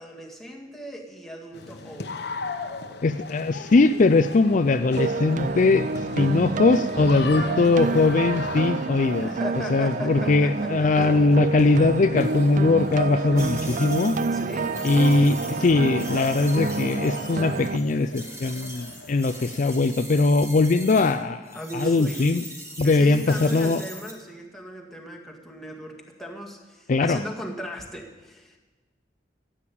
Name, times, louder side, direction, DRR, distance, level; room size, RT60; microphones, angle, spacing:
voice 1, 0.0-2.2 9.0-10.9 14.3-14.8 21.5-22.3 22.8-28.6, equal, ahead, -1 dB, 2.0 m, -37 dB
sound 1, 1.5-19.7, left 3 dB, 65° left, 1.0 m, -39 dB
voice 2, 3.0-5.9 6.2-9.3 9.7-14.2 14.8-22.4 22.8-23.8 26.9-27.2, left 3 dB, 45° left, 9 dB, 0.4 m, -21 dB
sound 2, 5.0-17.8, right 4 dB, 45° right, 0.4 m, -29 dB
sound 3, 13.4-21.2 21.4-24.1, right 1 dB, 15° right, 2.5 m, -42 dB
14.5 x 8.8 x 8.5 m, 1.3 s
head